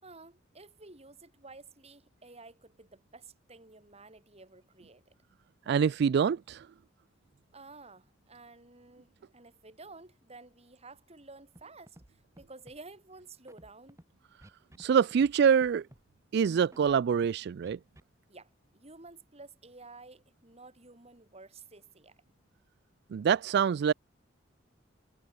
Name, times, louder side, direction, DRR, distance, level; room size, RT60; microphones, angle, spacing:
voice 1, 0.0-5.1 7.5-14.0 18.3-22.2, right 3 dB, 35° right, 6.0 m, -52 dB
voice 2, 5.7-6.7 14.8-15.9 16.3-17.8 23.1-23.9, right 7 dB, 60° right, 0.3 m, -25 dB
Scratching (performance technique), 11.6-11.7 11.9-12.1 12.4-12.8 13.5-14.0 14.4-14.9 15.1-15.3 15.6-16.0 16.7-17.3 17.6-18.0, right 1 dB, 15° right, 1.2 m, -54 dB
head